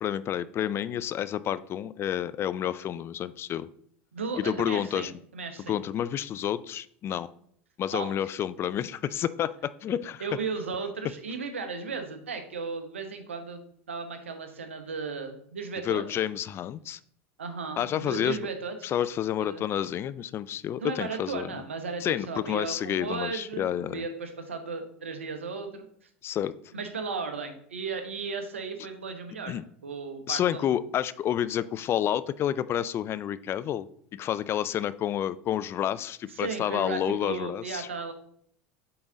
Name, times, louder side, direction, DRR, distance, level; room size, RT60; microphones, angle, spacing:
voice 1, 0.0-3.7 4.4-5.1 5.7-7.3 7.8-10.3 15.8-17.0 17.8-18.4 18.8-21.5 22.0-24.1 26.2-26.5 29.5-29.6 30.3-33.9 34.1-37.9, left 10 dB, 40° left, 16 dB, 0.3 m, -29 dB
voice 2, 4.1-5.8 7.9-8.1 10.2-13.6 13.9-16.2 17.4-18.9 19.4-19.6 20.8-25.9 26.7-29.5 29.8-30.7 36.3-38.1, right 4 dB, 90° right, 6 dB, 0.9 m, -35 dB
8.0 x 3.9 x 3.8 m, 0.64 s
hypercardioid pair, 80°, 7 cm